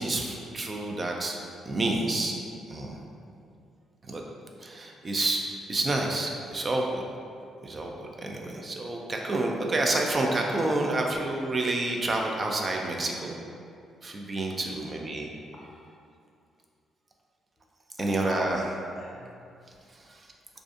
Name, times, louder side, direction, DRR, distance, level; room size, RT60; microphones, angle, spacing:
voice 1, 0.0-1.4 1.7-2.3 2.7-3.0 4.1-4.2 4.6-5.4 5.7-7.0 7.6-13.4 14.0-15.3 18.0-18.6 20.1-20.3, right 2 dB, 35° right, 0 dB, 0.3 m, -29 dB
voice 2, 14.6-14.9 15.5-15.9 18.0-19.3 19.5-19.6, left 2 dB, 50° left, -2 dB, 0.5 m, -43 dB
2.4 x 2.4 x 2.4 m, 2.4 s
supercardioid pair, 70°, 0 cm